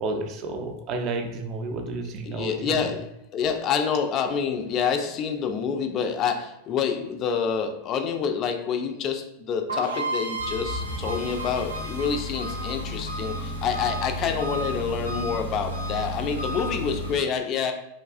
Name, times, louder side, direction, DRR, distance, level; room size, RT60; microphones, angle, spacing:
voice 1, 0.0-2.9, right 3 dB, 35° right, 5 dB, 0.4 m, -31 dB
voice 2, 2.3-17.7, left 6 dB, 35° left, 5 dB, 0.3 m, -27 dB
sound 1, 9.7-13.4, right 3 dB, 85° right, 0.6 m, -33 dB
Engine, 10.4-17.1, equal, 85° left, 0.6 m, -32 dB
3.1 x 2.3 x 2.3 m, 0.87 s
figure-of-eight pair, 90°, 0 cm